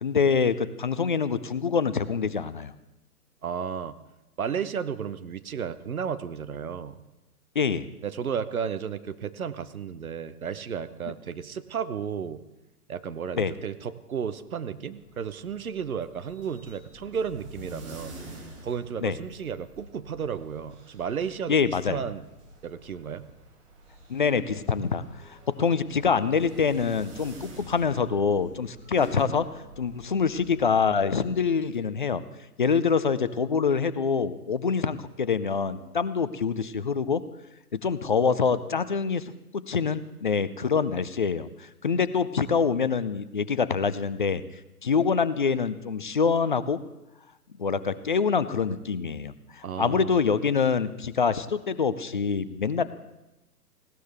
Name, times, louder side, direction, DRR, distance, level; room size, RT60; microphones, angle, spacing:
voice 1, 0.0-2.7 7.6-7.9 13.4-13.5 19.0-19.2 21.5-22.0 24.1-25.0 25.3-29.5 29.8-32.2 32.6-37.2 37.8-41.5 41.8-44.4 44.8-46.8 47.6-52.8, left 5 dB, 35° left, 14 dB, 0.5 m, -25 dB
voice 2, 3.4-4.0 4.4-6.9 8.0-12.4 12.9-18.2 18.6-22.2 22.6-23.2 49.6-50.2, right 7 dB, 60° right, 12 dB, 1.0 m, -33 dB
sound 1, 14.7-31.8, right 1 dB, 45° right, 3.9 m, -47 dB
19.0 x 16.5 x 3.5 m, 0.97 s
figure-of-eight pair, 125°, 47 cm